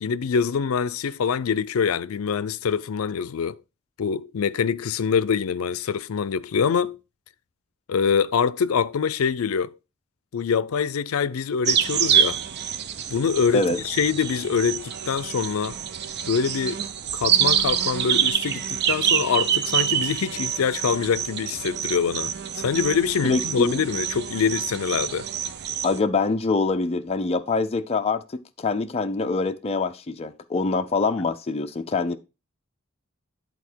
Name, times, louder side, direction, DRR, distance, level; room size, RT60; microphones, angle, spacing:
voice 1, 0.0-3.6 4.0-7.0 7.9-9.7 10.3-12.4 13.1-15.8 16.3-16.9 17.1-25.3, left 6 dB, 85° left, 0.5 m, -24 dB
sound 1, 11.7-26.0, right 9 dB, 50° right, 0.6 m, -26 dB
voice 2, 23.2-23.8 25.8-32.2, left 3 dB, 30° left, 0.4 m, -25 dB
10.5 x 4.1 x 4.4 m
head